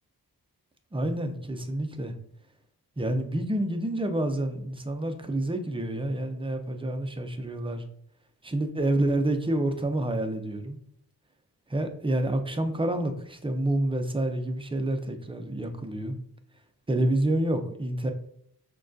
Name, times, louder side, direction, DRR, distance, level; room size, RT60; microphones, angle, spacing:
voice 1, 0.9-2.1 3.0-7.8 8.4-10.8 11.7-16.2 16.9-18.1, right 1 dB, 15° right, 6 dB, 0.5 m, -28 dB
6.1 x 2.3 x 2.5 m, 0.69 s
wide cardioid pair, 75°, 40 cm